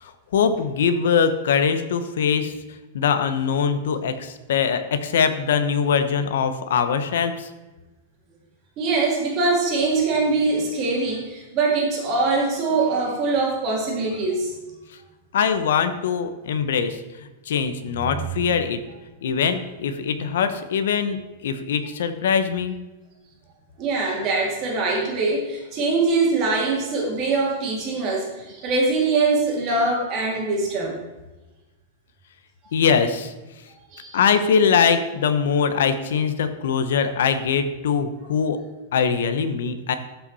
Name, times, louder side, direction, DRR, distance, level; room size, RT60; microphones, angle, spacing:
voice 1, 0.0-2.5 2.9-7.5 15.3-17.0 17.5-18.8 19.2-22.7 32.7-33.3 34.1-38.6 38.9-39.9, left 6 dB, 75° left, 9 dB, 0.9 m, -22 dB
voice 2, 8.8-14.5 17.9-18.5 23.8-31.0 33.9-34.2, right 3 dB, 30° right, -2 dB, 2.0 m, -23 dB
14.0 x 5.8 x 4.2 m, 1.1 s
supercardioid pair, 165°, 0 cm